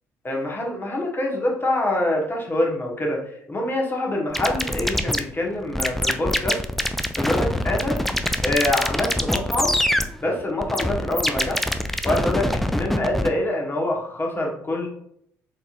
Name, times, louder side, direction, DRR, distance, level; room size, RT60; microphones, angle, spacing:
voice 1, 0.2-6.6 7.2-8.0 8.4-9.7 10.2-11.7 12.0-14.9, left 1 dB, 25° left, -1 dB, 1.2 m, -25 dB
sound 1, 4.3-13.3, left 1 dB, ahead, 0.3 m, -24 dB
4.1 x 2.9 x 2.5 m, 0.69 s
hypercardioid pair, 50°, 8 cm